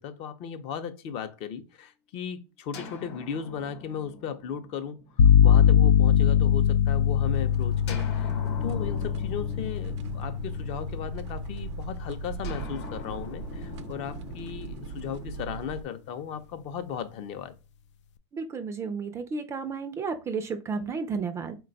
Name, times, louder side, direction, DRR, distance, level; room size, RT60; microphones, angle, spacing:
voice 1, 0.0-17.6, left 8 dB, 40° left, 0.6 m, -36 dB
sound 1, 2.7-6.5 7.9-11.4 12.4-16.6, left 4 dB, 65° left, 0.9 m, -43 dB
sound 2, 5.2-12.9, left 8 dB, 85° left, 0.4 m, -23 dB
sound 3, 7.3-15.8, right 6 dB, 75° right, 0.5 m, -39 dB
voice 2, 18.3-21.6, right 5 dB, 20° right, 0.4 m, -32 dB
4.0 x 2.2 x 3.8 m
supercardioid pair, 135°, 15 cm